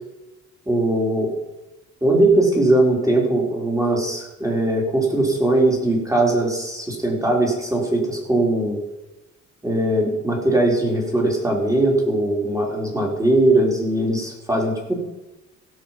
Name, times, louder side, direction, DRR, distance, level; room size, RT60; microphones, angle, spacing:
voice 1, 0.7-1.3 2.0-8.8 9.6-14.9, right 1 dB, 10° right, -1 dB, 4.1 m, -20 dB
16.5 x 6.5 x 5.8 m, 1.0 s
cardioid pair, 90°, 30 cm